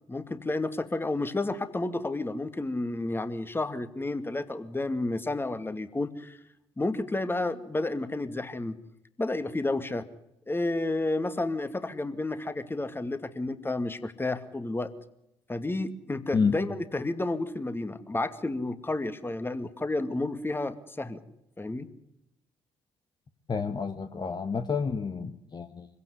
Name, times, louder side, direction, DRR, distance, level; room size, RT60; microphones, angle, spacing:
voice 1, 0.1-6.4 6.8-8.8 9.2-10.0 10.5-14.9 15.5-21.2 21.6-21.9, left 2 dB, 15° left, 11 dB, 2.4 m, -31 dB
voice 2, 23.5-25.9, left 5 dB, 35° left, 6 dB, 1.8 m, -29 dB
25.0 x 16.5 x 9.8 m, 0.84 s
hypercardioid pair, 55°, 13 cm